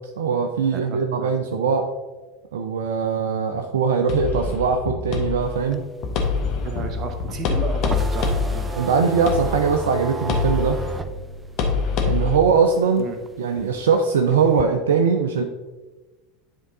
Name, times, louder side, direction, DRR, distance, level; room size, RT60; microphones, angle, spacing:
voice 1, 0.2-1.9 2.5-5.8 8.8-10.8 12.0-13.1 13.4-15.4, right 5 dB, 70° right, 5 dB, 0.5 m, -21 dB
voice 2, 0.7-1.3 6.6-8.7 13.0-13.2, right 4 dB, 40° right, 5 dB, 1.2 m, -33 dB
sound 1, 4.1-12.4, left 5 dB, 45° left, 1.2 m, -26 dB
sound 2, 5.4-12.5 12.9-14.6, right 2 dB, 15° right, 0.5 m, -32 dB
10.0 x 3.7 x 4.0 m, 1.2 s
figure-of-eight pair, 75°, 0 cm